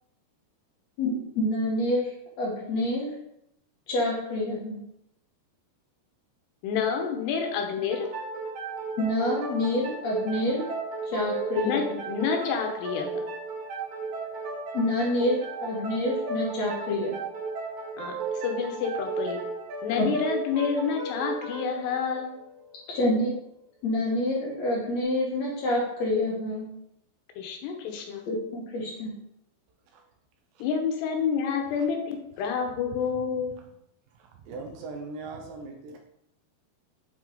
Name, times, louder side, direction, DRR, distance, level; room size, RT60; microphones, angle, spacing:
voice 1, 1.0-2.1 2.4-3.1 3.9-4.8 9.0-10.6 11.1-12.0 14.7-17.1 20.0-20.1 22.9-23.3 23.8-26.7 28.3-29.1, left 1 dB, 55° left, -3 dB, 2.0 m, -27 dB
voice 2, 6.6-8.1 11.6-13.2 18.0-19.4 19.8-22.3 27.4-28.2 30.6-33.5, left 6 dB, 85° left, 3 dB, 3.0 m, -29 dB
sound 1, 7.9-23.3, right 3 dB, 55° right, 2.4 m, -35 dB
voice 3, 34.5-36.1, right 3 dB, 80° right, 3 dB, 2.1 m, -39 dB
7.5 x 4.6 x 3.7 m, 0.78 s
omnidirectional pair, 4.9 m